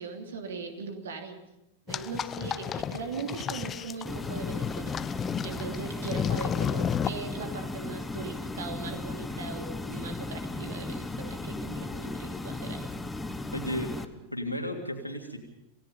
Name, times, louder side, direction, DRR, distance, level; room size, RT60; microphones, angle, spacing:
voice 1, 0.0-1.4 1.9-12.9, right 4 dB, 65° right, 4 dB, 2.9 m, -39 dB
rocco mangia, 1.9-7.1, left 8 dB, 25° left, 0.7 m, -32 dB
sound 1, 4.1-14.1, left 2 dB, 5° left, 1.2 m, -36 dB
sound 2, 5.9-6.1 6.4-6.5 6.8-7.0 8.8-9.6 9.9-10.1 10.4-11.0 12.8-13.6, right 6 dB, 35° right, 3.1 m, -58 dB
voice 2, 13.5-15.4, left 1 dB, 90° left, 2 dB, 3.1 m, -34 dB
28.0 x 17.5 x 5.4 m, 0.91 s
figure-of-eight pair, 90°, 0 cm